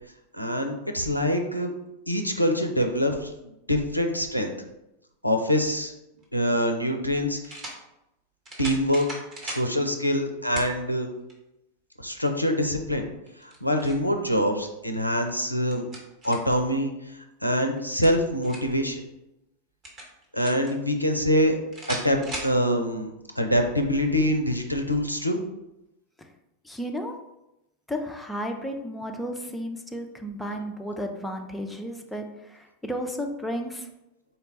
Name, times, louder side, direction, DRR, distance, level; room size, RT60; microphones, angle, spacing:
voice 1, 0.3-1.7 2.1-3.3 3.7-4.5 5.2-5.9 6.3-7.6 8.6-9.1 9.4-11.1 12.0-13.1 13.4-15.9 16.2-19.0 20.3-21.5 21.9-25.4, equal, 90° left, 4 dB, 0.4 m, -25 dB
sound 1, 6.2-6.3 7.4-7.8 8.4-9.7 10.5-10.7 11.3-11.4 13.3-14.1 15.4-16.6 17.8-18.8 19.8-20.7 21.7-22.5, right 1 dB, 30° right, 1.0 m, -38 dB
voice 2, 26.6-27.1 27.9-33.9, equal, 5° left, 3 dB, 0.4 m, -33 dB
4.0 x 2.2 x 3.7 m, 0.89 s
figure-of-eight pair, 90°, 0 cm